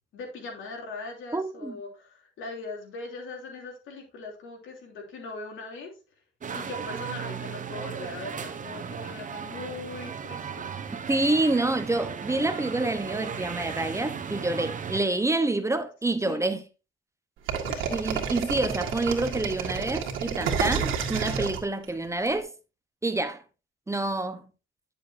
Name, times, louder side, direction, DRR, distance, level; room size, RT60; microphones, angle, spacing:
voice 1, 0.1-5.9 6.5-10.7 16.2-16.4 17.7-18.0, left 3 dB, 80° left, 3.0 m, -40 dB
voice 2, 1.3-1.8 11.1-16.6 17.9-22.5 23.0-23.4 23.9-24.4, right 2 dB, 15° right, 0.9 m, -27 dB
sound 1, 6.4-15.0, right 7 dB, 40° right, 1.1 m, -36 dB
sound 2, 17.5-22.3, right 7 dB, 85° right, 1.8 m, -29 dB
10.5 x 6.9 x 2.7 m
cardioid pair, 90°, 20 cm